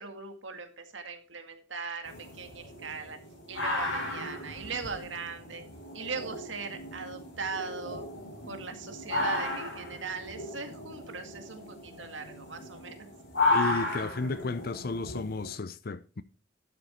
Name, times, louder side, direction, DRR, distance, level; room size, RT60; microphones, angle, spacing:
voice 1, 0.0-3.2 3.5-5.6 5.9-8.0 8.5-13.1, right 4 dB, 85° right, 2.0 m, -39 dB
sound 1, 2.1-15.5, left 2 dB, 85° left, 5.2 m, -34 dB
voice 2, 13.5-16.2, left 3 dB, 55° left, 0.6 m, -33 dB
12.0 x 8.0 x 4.4 m
head